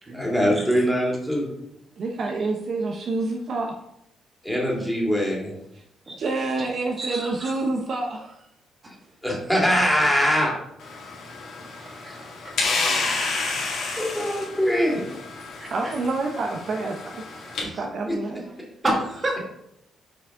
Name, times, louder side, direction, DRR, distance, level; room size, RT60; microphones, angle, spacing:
voice 1, 0.1-1.5 4.4-5.5 9.2-10.5 14.0-15.0 17.6-17.8, equal, 5° left, -3 dB, 2.4 m, -22 dB
voice 2, 2.0-3.7 6.1-8.4 11.8-11.9 15.7-18.4, right 3 dB, 55° right, 1 dB, 0.8 m, -28 dB
voice 3, 6.1-6.7 7.0-7.6 12.0-12.2 15.6-15.9 18.8-19.5, right 1 dB, 35° right, -1 dB, 2.1 m, -30 dB
sound 1, 10.8-17.6, left 3 dB, 70° left, 2.3 m, -30 dB
5.9 x 4.9 x 3.8 m, 0.79 s
cardioid pair, 90°, 0 cm